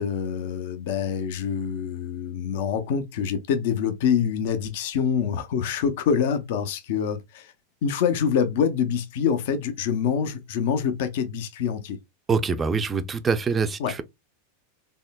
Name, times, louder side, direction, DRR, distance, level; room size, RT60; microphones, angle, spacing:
voice 1, 0.0-7.5 7.8-12.0 13.8-13.9, left 7 dB, 65° left, 0.5 m, -25 dB
voice 2, 12.3-14.0, right 5 dB, 20° right, 0.4 m, -24 dB
3.5 x 2.0 x 2.2 m
hypercardioid pair, 115°, 0 cm